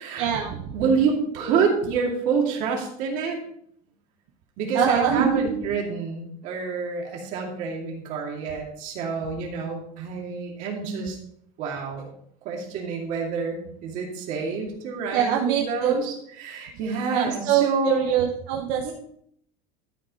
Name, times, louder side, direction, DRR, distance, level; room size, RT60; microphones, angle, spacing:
voice 1, 0.2-0.7 4.7-5.8 15.1-16.0 17.1-18.9, right 8 dB, 70° right, 1 dB, 1.0 m, -24 dB
voice 2, 0.7-3.4 4.6-11.2 11.6-12.1 12.4-18.1 18.8-18.9, right 5 dB, 45° right, 0 dB, 2.4 m, -27 dB
12.5 x 5.0 x 4.7 m, 0.69 s
cardioid pair, 175°, 18 cm